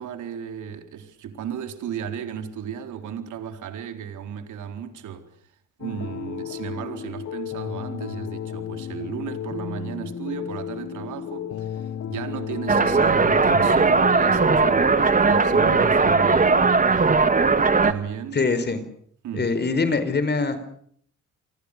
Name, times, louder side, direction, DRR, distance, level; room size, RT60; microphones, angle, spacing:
voice 1, 0.0-5.5 5.8-17.2 17.8-18.4 19.2-19.5, right 8 dB, 75° right, 4.2 m, -35 dB
sound 1, 5.8-15.9, left 9 dB, 60° left, 2.2 m, -34 dB
sound 2, 12.7-17.9, right 4 dB, 25° right, 2.3 m, -18 dB
voice 2, 18.3-18.8 19.3-20.7, left 4 dB, 35° left, 4.9 m, -23 dB
29.0 x 25.5 x 6.8 m
cardioid pair, 90°, 30 cm